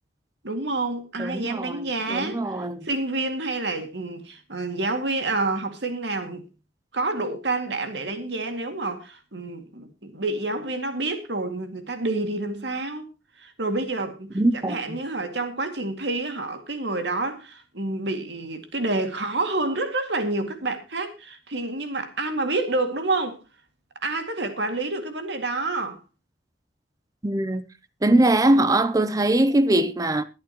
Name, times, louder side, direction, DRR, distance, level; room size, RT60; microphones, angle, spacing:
voice 1, 0.4-6.4 6.9-13.1 13.4-23.4 24.0-26.0, right 2 dB, 70° right, 2.2 m, -28 dB
voice 2, 1.2-2.9 14.3-15.0 27.2-27.6 28.0-30.2, right 1 dB, 20° right, 0.5 m, -22 dB
22.5 x 8.7 x 3.0 m
head